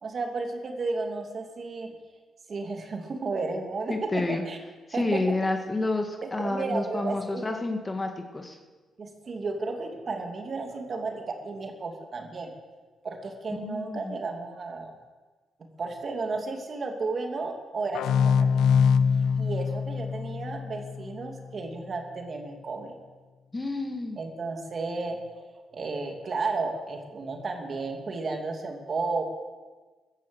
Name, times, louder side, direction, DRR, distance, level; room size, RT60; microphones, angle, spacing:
voice 1, 0.0-2.0 2.5-4.6 4.9-5.4 6.2-7.5 9.0-12.5 13.0-14.9 15.8-18.5 19.4-23.0 24.2-25.5 25.7-29.2, right 3 dB, 45° right, 3 dB, 2.7 m, -33 dB
voice 2, 3.9-4.4 4.9-8.6 13.5-14.2 23.5-24.2, left 2 dB, 20° left, 3 dB, 1.8 m, -29 dB
sound 1, 17.9-21.4, left 6 dB, 80° left, 0.6 m, -24 dB
14.0 x 11.5 x 8.0 m, 1.3 s
cardioid pair, 90°, 0 cm